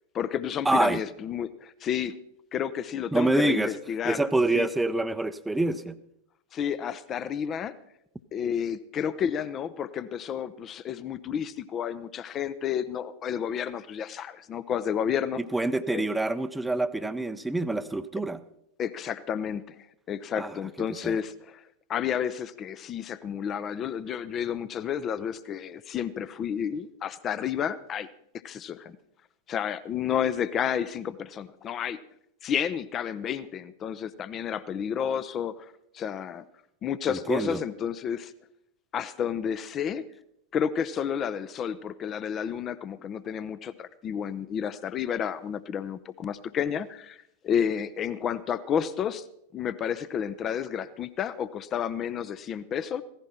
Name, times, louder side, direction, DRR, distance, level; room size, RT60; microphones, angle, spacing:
voice 1, 0.1-2.2 2.5-4.2 4.5-4.7 6.5-7.7 8.3-15.4 15.9-16.1 18.8-19.8 20.1-21.6 21.9-28.1 28.4-29.0 29.5-32.0 32.4-36.4 36.8-38.3 38.9-40.1 40.5-49.2 49.5-53.0, left 8 dB, 30° left, 15 dB, 0.7 m, -31 dB
voice 2, 0.7-1.0 3.1-3.7 4.0-6.0 15.5-18.4 20.4-20.5 20.9-21.2 37.1-37.6, right 2 dB, 5° right, 12 dB, 0.7 m, -26 dB
16.5 x 15.0 x 4.3 m, 0.77 s
figure-of-eight pair, 90°, 0 cm